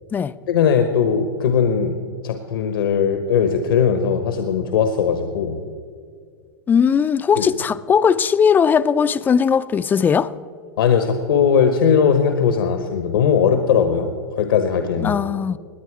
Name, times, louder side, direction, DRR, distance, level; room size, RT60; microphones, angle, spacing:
voice 1, 0.5-1.9 2.2-5.6 7.4-7.5 10.8-14.1 14.4-15.1, left 7 dB, 80° left, 1.1 m, -19 dB
voice 2, 6.7-10.3 15.0-15.6, left 7 dB, 15° left, 0.4 m, -18 dB
18.5 x 9.4 x 4.9 m
hypercardioid pair, 125°, 12 cm